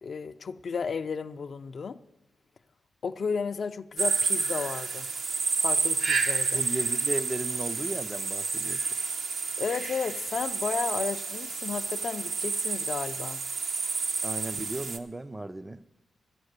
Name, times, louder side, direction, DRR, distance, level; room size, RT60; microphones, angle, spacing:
voice 1, 0.0-2.0 3.0-5.1 5.6-6.6 9.6-13.4, left 5 dB, 50° left, 10 dB, 0.4 m, -33 dB
sound 1, 4.0-15.0, right 4 dB, 60° right, 0.7 m, -30 dB
voice 2, 6.5-8.9 14.2-15.9, right 2 dB, 15° right, 12 dB, 0.4 m, -35 dB
13.0 x 7.7 x 6.6 m, 1.1 s
wide cardioid pair, 115°, 0 cm